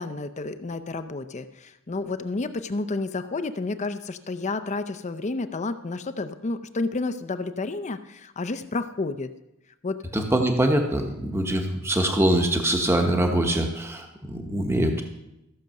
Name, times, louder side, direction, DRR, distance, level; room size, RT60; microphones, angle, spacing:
voice 1, 0.0-9.3 9.8-10.0, left 3 dB, 35° left, 11 dB, 0.5 m, -30 dB
voice 2, 10.1-15.0, right 1 dB, 10° right, 3 dB, 1.0 m, -23 dB
14.5 x 6.6 x 6.5 m, 0.89 s
head